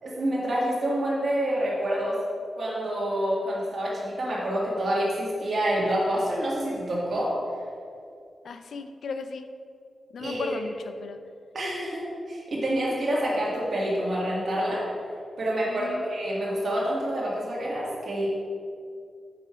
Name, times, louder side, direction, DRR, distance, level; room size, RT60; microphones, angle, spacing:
voice 1, 0.0-2.2 2.6-7.3 10.2-10.5 11.5-14.8 15.4-18.3, right 1 dB, 55° right, -6 dB, 1.9 m, -27 dB
voice 2, 8.4-9.5 10.1-11.2 15.7-16.0, left 4 dB, 70° left, 8 dB, 0.5 m, -36 dB
7.9 x 5.8 x 4.9 m, 2.3 s
wide cardioid pair, 170°, 0 cm